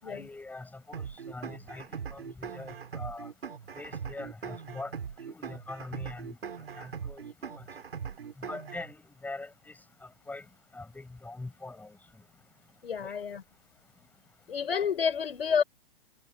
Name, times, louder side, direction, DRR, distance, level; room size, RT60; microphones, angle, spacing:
voice 1, 0.0-3.3 3.8-4.9 5.3-6.4 6.7-7.7 8.4-9.7 10.3-10.4 10.7-12.0 13.0-13.1, left 2 dB, 5° left, 6.4 m, -43 dB
sound 1, 0.9-8.9, right 7 dB, 80° right, 6.0 m, -40 dB
voice 2, 12.8-13.4 14.5-15.6, left 7 dB, 80° left, 5.3 m, -29 dB
hypercardioid pair, 125°, 30 cm